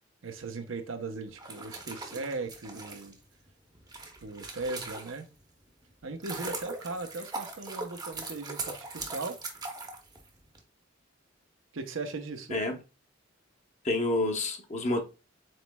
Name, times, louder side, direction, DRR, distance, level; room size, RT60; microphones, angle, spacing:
voice 1, 0.2-3.2 4.2-5.3 6.0-9.4 11.7-12.6, right 3 dB, 85° right, 0.7 m, -38 dB
sound 1, 1.3-5.4 5.9-10.6, right 3 dB, 20° right, 0.7 m, -40 dB
voice 2, 13.8-15.0, left 2 dB, 35° left, 0.8 m, -28 dB
7.5 x 3.1 x 2.2 m
head